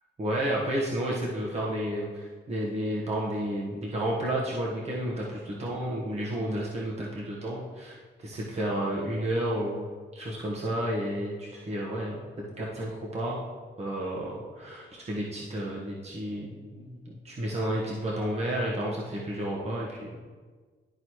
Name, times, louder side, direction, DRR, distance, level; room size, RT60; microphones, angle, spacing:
voice 1, 0.2-9.9 10.1-12.2 12.6-13.4 13.8-20.2, right 1 dB, 35° right, -4 dB, 1.3 m, -31 dB
12.0 x 4.1 x 3.1 m, 1.5 s
cardioid pair, 90°, 20 cm